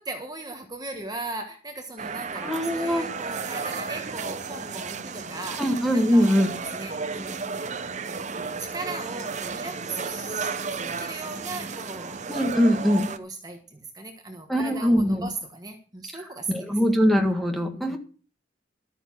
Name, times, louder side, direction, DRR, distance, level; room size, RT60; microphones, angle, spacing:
voice 1, 0.0-6.4 6.7-7.7 8.6-10.5 10.8-12.2 12.9-16.8 17.7-18.0, right 3 dB, 20° right, 4 dB, 1.4 m, -38 dB
sound 1, 2.0-13.2, right 5 dB, 40° right, 0.8 m, -33 dB
voice 2, 2.4-3.1 5.6-6.5 12.3-13.1 14.5-15.3 16.5-18.0, equal, ahead, 3 dB, 1.8 m, -22 dB
12.5 x 9.0 x 6.2 m, 0.39 s
head